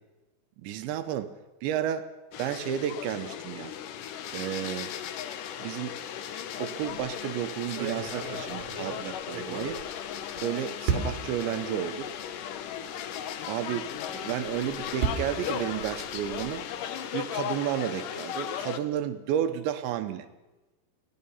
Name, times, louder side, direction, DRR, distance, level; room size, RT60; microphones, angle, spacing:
voice 1, 0.6-1.3 1.6-2.1 2.4-3.8 4.3-4.9 5.6-6.0 6.6-9.8 10.4-12.1 13.5-16.7 17.1-20.3, right 10 dB, 80° right, 9 dB, 3.1 m, -32 dB
sound 1, 2.3-18.8, left 9 dB, 80° left, 1.9 m, -36 dB
sound 2, 6.8-7.1 7.6-10.4 10.9-11.4 12.1-12.2 12.6-12.7 14.3-16.6, right 6 dB, 55° right, 3.8 m, -34 dB
28.5 x 17.0 x 5.7 m, 1.1 s
omnidirectional pair, 5.3 m